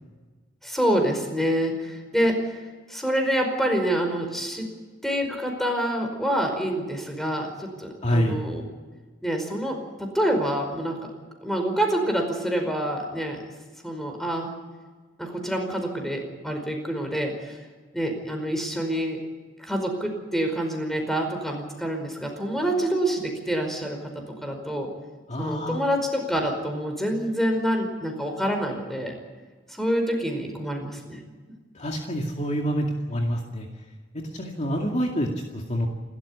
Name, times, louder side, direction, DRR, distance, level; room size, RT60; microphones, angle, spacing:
voice 1, 0.6-2.6 2.9-4.7 5.0-8.6 9.2-11.0 11.4-13.4 13.8-14.5 15.2-17.6 17.9-19.2 19.6-24.9 25.4-29.1 29.7-31.2, equal, ahead, 4 dB, 5.0 m, -27 dB
voice 2, 8.0-8.4 25.3-25.9 31.7-33.7 34.3-35.9, equal, 40° left, 1 dB, 2.3 m, -27 dB
28.0 x 13.5 x 8.7 m, 1.4 s
head